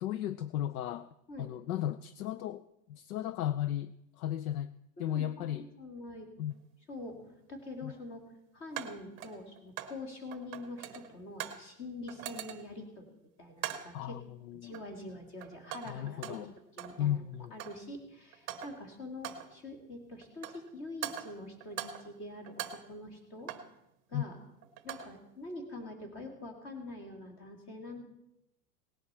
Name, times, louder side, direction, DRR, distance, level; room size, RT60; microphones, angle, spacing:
voice 1, 0.0-1.1 1.4-4.7 5.0-5.7 6.4-6.5 7.8-7.9 13.9-14.7 15.9-16.5 17.0-17.5 24.1-24.2, left 11 dB, 60° left, 15 dB, 0.5 m, -35 dB
voice 2, 5.0-6.3 6.9-8.2 8.5-14.2 14.5-17.2 17.5-23.5 24.1-24.4 24.8-28.0, left 2 dB, 25° left, 4 dB, 2.4 m, -45 dB
sound 1, 6.5-6.6 8.8-10.0 10.3-11.7 12.1-12.8 13.6-14.0 14.7-15.1 15.4-17.0 17.3-17.9 18.3-18.9 19.2-19.6 20.2-20.7 21.0-22.2 22.5-23.8 24.6-25.2, right 11 dB, 25° right, 0.9 m, -42 dB
18.0 x 10.5 x 4.4 m, 0.85 s
supercardioid pair, 170°, 48 cm